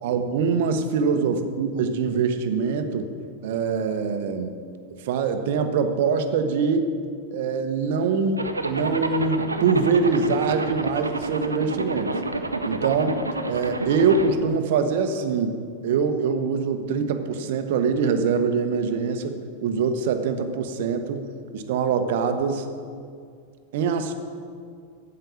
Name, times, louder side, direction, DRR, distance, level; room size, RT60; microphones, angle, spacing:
voice 1, 0.0-3.1 3.4-4.5 5.0-6.9 7.3-12.1 12.6-13.2 13.5-15.6 15.8-21.2 21.5-22.7 23.7-24.1, right 5 dB, 55° right, 8 dB, 0.9 m, -24 dB
Zipper (clothing), 8.4-14.3, right 2 dB, 80° right, 0.6 m, -29 dB
9.1 x 7.9 x 7.0 m, 2.2 s
figure-of-eight pair, 90°, 0 cm